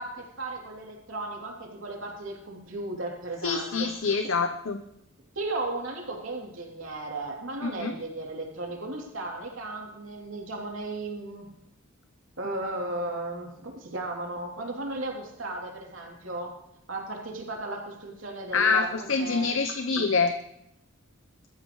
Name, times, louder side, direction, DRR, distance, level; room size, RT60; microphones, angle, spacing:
voice 1, 0.0-4.1 5.3-11.5 12.4-16.5 16.9-19.5 19.9-20.1, right 2 dB, 75° right, -1 dB, 3.1 m, -35 dB
voice 2, 3.4-4.8 7.6-7.9 18.5-20.3, left 4 dB, 80° left, 7 dB, 0.8 m, -26 dB
22.0 x 13.5 x 3.2 m, 0.81 s
head